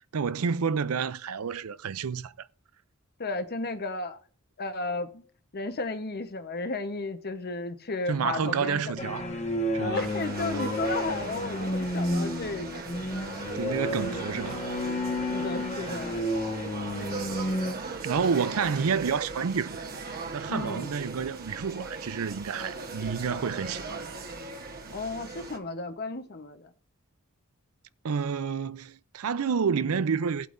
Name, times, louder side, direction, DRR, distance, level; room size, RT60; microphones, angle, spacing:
voice 1, 0.1-2.5 8.1-9.3 9.7-10.1 13.5-14.7 18.0-19.8 20.3-24.0 28.0-30.5, right 6 dB, 75° right, 0.5 m, -29 dB
voice 2, 3.2-4.2 4.6-5.2 5.5-8.8 9.8-12.8 15.3-16.3 20.5-20.9 24.9-26.7, left 3 dB, 45° left, 1.0 m, -33 dB
sound 1, 9.0-17.7, left 1 dB, 30° left, 1.3 m, -31 dB
sound 2, 9.9-25.6, right 3 dB, 45° right, 1.2 m, -38 dB
17.5 x 8.2 x 2.6 m
head